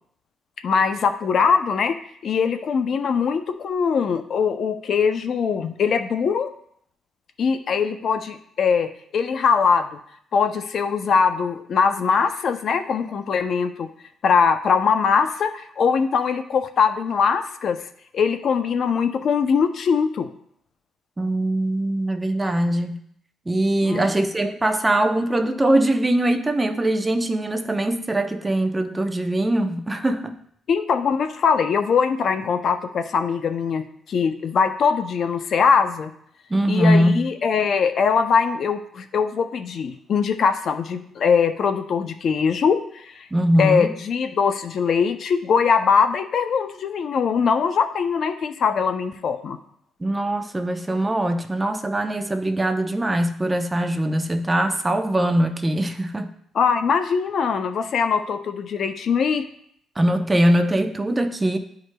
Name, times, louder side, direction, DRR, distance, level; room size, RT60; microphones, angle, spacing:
voice 1, 0.6-2.0 2.2-6.5 7.4-9.9 10.3-13.9 14.2-17.8 18.1-20.3 23.8-24.1 30.7-36.1 36.7-43.3 43.6-49.6 56.5-59.4, left 6 dB, 60° left, 8 dB, 0.5 m, -21 dB
voice 2, 21.2-23.0 23.5-30.4 36.5-37.3 43.3-43.9 50.0-56.3 60.0-61.6, right 1 dB, 20° right, 6 dB, 0.7 m, -21 dB
11.5 x 4.7 x 2.2 m, 0.67 s
cardioid pair, 90°, 0 cm